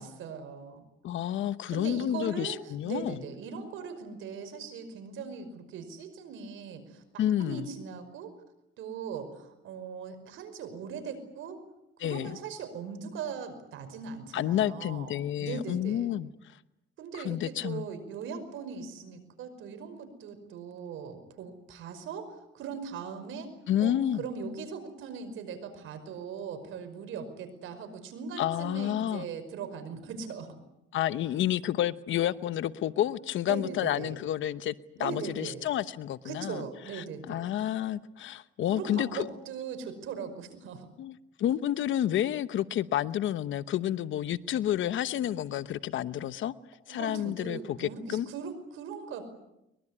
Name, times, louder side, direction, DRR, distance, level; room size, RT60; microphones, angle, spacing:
voice 1, 0.0-0.9 1.7-8.3 8.8-11.6 12.0-16.1 17.0-23.5 23.8-30.6 33.5-34.2 35.0-35.6 36.2-37.5 38.7-40.9 46.9-49.3, right 6 dB, 85° right, 9 dB, 5.4 m, -40 dB
voice 2, 1.0-3.2 7.2-7.7 12.0-12.4 14.3-16.3 17.1-17.8 23.7-24.2 28.4-29.3 30.9-34.7 35.0-36.6 36.9-39.2 41.0-46.5 46.9-48.3, left 11 dB, 75° left, 14 dB, 1.0 m, -30 dB
23.5 x 22.0 x 9.9 m, 0.87 s
cardioid pair, 90°, 20 cm